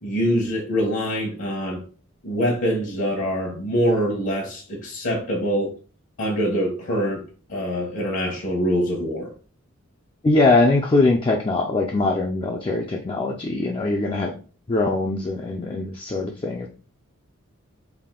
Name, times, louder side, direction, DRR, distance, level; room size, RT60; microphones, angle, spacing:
voice 1, 0.0-1.8 2.2-5.7 6.2-7.2 7.5-9.3, equal, 60° left, 0.9 m, -24 dB
voice 2, 10.2-14.3 14.7-16.7, left 2 dB, 25° left, 0.3 m, -22 dB
3.5 x 2.5 x 3.7 m
head